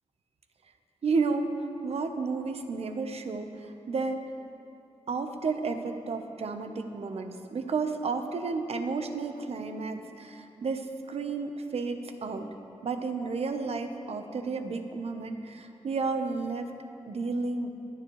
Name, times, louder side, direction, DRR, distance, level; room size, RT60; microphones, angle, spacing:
voice 1, 1.0-1.5 1.8-4.3 5.1-12.5 12.8-16.7 17.1-17.7, right 4 dB, 70° right, 6 dB, 0.9 m, -32 dB
23.0 x 9.8 x 3.2 m, 2.7 s
wide cardioid pair, 85°, 11 cm